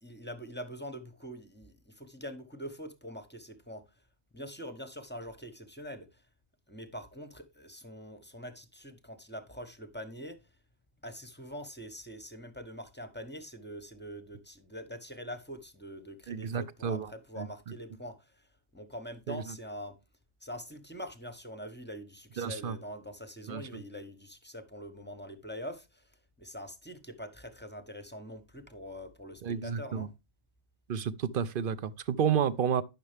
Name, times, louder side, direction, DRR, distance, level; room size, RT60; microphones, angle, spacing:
voice 1, 0.0-3.9 4.3-6.2 6.7-10.4 11.0-20.0 20.4-30.1, equal, 10° left, 1.0 m, -44 dB
voice 2, 16.3-17.1 19.3-19.4 22.4-22.7 23.5-23.6 29.4-30.1 30.9-32.8, right 8 dB, 55° right, 0.8 m, -30 dB
10.5 x 6.8 x 3.3 m
omnidirectional pair, 1.1 m